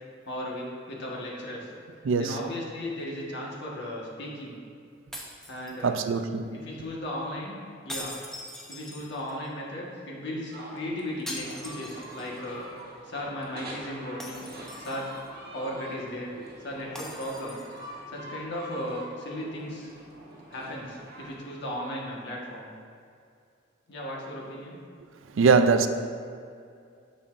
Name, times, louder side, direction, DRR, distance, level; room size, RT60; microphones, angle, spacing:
voice 1, 0.3-1.7 2.2-4.5 5.5-6.0 6.5-7.6 7.8-8.2 8.7-12.7 13.1-14.5 14.8-15.1 15.5-16.3 16.6-17.6 18.1-19.9 20.5-22.7 23.9-24.8, left 1 dB, 65° left, 1.4 m, -36 dB
voice 2, 2.0-2.4 5.8-6.6 25.3-25.9, right 5 dB, 85° right, 0.4 m, -22 dB
sound 1, 5.1-6.2 7.9-9.5 11.3-12.5 12.8-12.9 14.2-15.3 16.9-17.9, left 1 dB, ahead, 0.7 m, -42 dB
sound 2, 10.5-21.4, right 1 dB, 55° right, 1.2 m, -44 dB
8.9 x 6.9 x 2.5 m
head